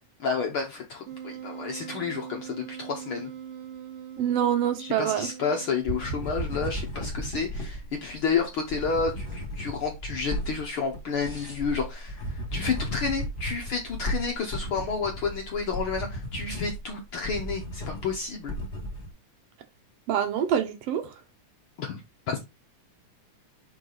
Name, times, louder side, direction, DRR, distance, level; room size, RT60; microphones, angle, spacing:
voice 1, 0.2-3.3 4.8-18.5 21.8-22.0 22.3-22.4, left 5 dB, 80° left, 1.2 m, -30 dB
Wind instrument woodwind instrument, 1.1-6.5, right 9 dB, 90° right, 2.3 m, -42 dB
voice 2, 4.2-5.3 20.1-21.1, right 9 dB, 70° right, 1.6 m, -25 dB
sound 1, 5.8-19.1, equal, 25° left, 1.5 m, -35 dB
5.7 x 4.7 x 3.9 m
omnidirectional pair, 3.7 m